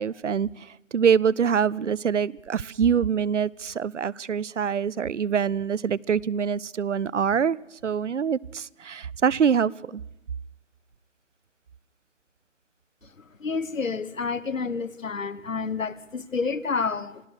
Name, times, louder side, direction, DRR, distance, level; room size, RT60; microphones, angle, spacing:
voice 1, 0.0-7.6 7.8-10.0, right 7 dB, 65° right, 25 dB, 0.6 m, -25 dB
voice 2, 13.4-17.2, left 4 dB, 85° left, 17 dB, 1.3 m, -29 dB
26.5 x 16.5 x 6.4 m, 0.89 s
figure-of-eight pair, 165°, 38 cm